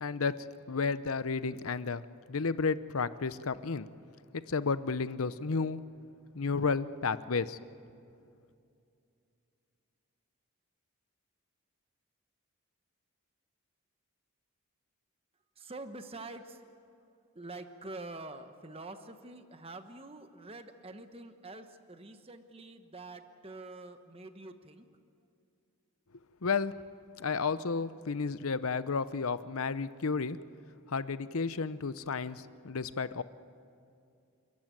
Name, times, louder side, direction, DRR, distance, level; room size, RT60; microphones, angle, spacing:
voice 1, 0.0-2.0 2.3-3.9 4.3-5.8 6.3-7.6 26.4-26.7 27.2-30.4 30.9-33.2, left 4 dB, 75° left, 14 dB, 0.8 m, -32 dB
voice 2, 15.6-16.8 17.3-24.9, right 2 dB, 25° right, 8 dB, 1.1 m, -46 dB
28.5 x 14.0 x 9.2 m, 2.5 s
head